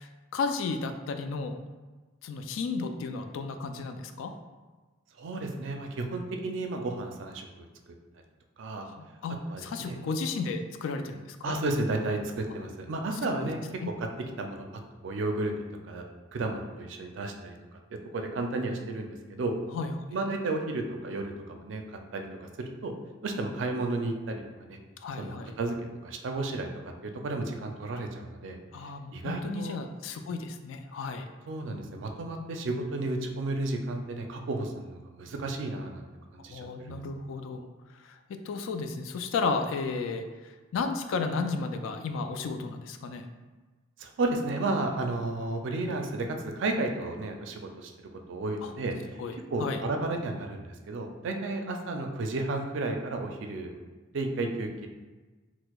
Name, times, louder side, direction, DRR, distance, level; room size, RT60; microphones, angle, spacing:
voice 1, 0.0-1.6 2.2-4.3 8.8-11.5 13.4-13.5 13.8-13.9 19.7-20.0 25.0-25.5 28.7-31.3 36.5-37.7 37.9-43.3 48.6-48.7 49.2-49.8, left 4 dB, 80° left, 7 dB, 0.3 m, -33 dB
voice 2, 5.2-7.7 8.6-8.9 9.5-10.0 11.4-13.6 14.0-14.1 14.4-14.6 15.0-15.5 15.8-16.0 16.3-17.8 18.1-19.5 20.1-21.8 22.1-22.9 23.2-24.8 25.2-25.7 26.0-26.7 27.0-28.6 29.1-29.8 31.5-36.0 36.3-37.0 44.0-47.9 48.3-48.9 49.5-53.7 54.1-54.9, right 2 dB, 70° right, 3 dB, 0.4 m, -32 dB
4.4 x 2.0 x 2.3 m, 1.3 s
head